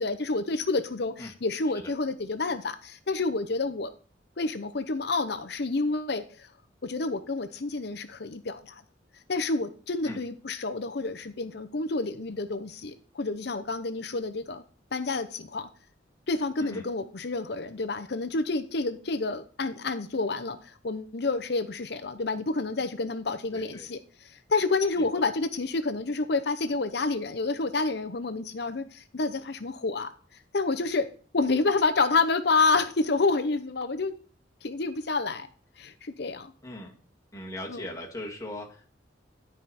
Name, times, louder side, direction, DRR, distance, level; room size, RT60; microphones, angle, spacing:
voice 1, 0.0-3.9 4.4-6.5 6.8-8.8 9.3-14.6 14.9-15.7 16.3-30.1 30.5-31.1 31.3-34.1 34.6-35.5 35.8-36.5 37.7-37.8, left 3 dB, 60° left, 10 dB, 0.8 m, -29 dB
voice 2, 23.5-23.9 25.1-25.2 36.6-36.9 37.3-38.9, left 1 dB, 20° left, -2 dB, 1.9 m, -39 dB
11.0 x 5.0 x 4.2 m, 0.42 s
head